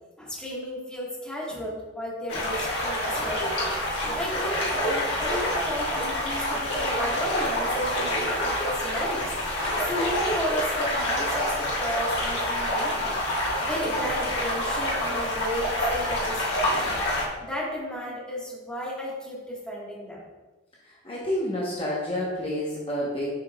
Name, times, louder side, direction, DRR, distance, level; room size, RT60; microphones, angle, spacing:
voice 1, 0.2-3.6 4.0-13.2 13.6-20.2, equal, 5° left, -6 dB, 1.5 m, -34 dB
sound 1, 2.3-17.3, left 1 dB, 90° left, 1.7 m, -27 dB
voice 2, 20.8-23.3, left 1 dB, 30° left, -5 dB, 1.0 m, -29 dB
7.5 x 5.8 x 2.3 m, 1.2 s
head